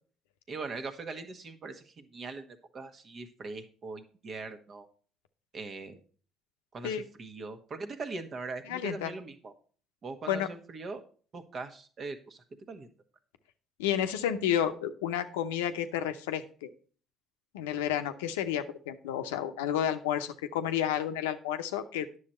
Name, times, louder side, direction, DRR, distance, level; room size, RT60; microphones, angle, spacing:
voice 1, 0.5-4.9 5.5-6.0 6.7-9.5 10.0-11.0 11.3-12.9, right 3 dB, 45° right, 8 dB, 1.2 m, -41 dB
voice 2, 8.7-9.1 10.3-10.5 13.8-16.7 17.5-22.1, left 10 dB, 85° left, 8 dB, 0.6 m, -31 dB
9.9 x 6.6 x 4.3 m, 0.42 s
hypercardioid pair, 60°, 0 cm